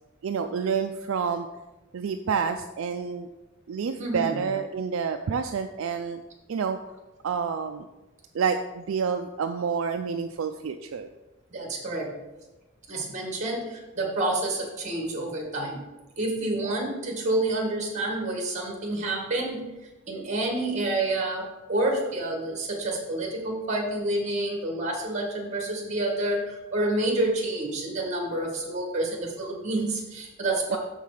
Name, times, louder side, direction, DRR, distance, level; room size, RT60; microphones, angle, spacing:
voice 1, 0.2-1.5 1.9-3.3 3.7-6.2 6.5-6.8 7.2-7.9 8.3-11.1 30.7-30.8, right 6 dB, 70° right, 7 dB, 0.4 m, -28 dB
voice 2, 4.0-4.4 11.5-12.1 12.9-15.9 16.2-19.7 20.1-30.8, right 2 dB, 35° right, 1 dB, 1.5 m, -28 dB
6.6 x 5.5 x 4.9 m, 1.1 s
head